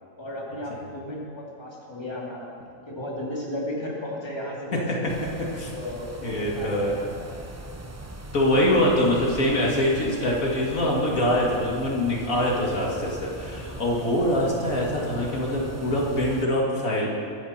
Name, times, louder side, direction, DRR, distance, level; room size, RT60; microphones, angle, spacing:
voice 1, 0.2-2.6 2.9-5.0 5.7-7.5, left 1 dB, 20° left, -4 dB, 2.8 m, -35 dB
voice 2, 4.7-5.1 5.5-5.7 6.2-7.1 8.3-17.1, left 1 dB, 75° left, -3 dB, 2.6 m, -24 dB
sound 1, 5.1-16.5, right 2 dB, 25° right, 0.3 m, -40 dB
23.5 x 11.0 x 4.4 m, 2.5 s
omnidirectional pair, 1.5 m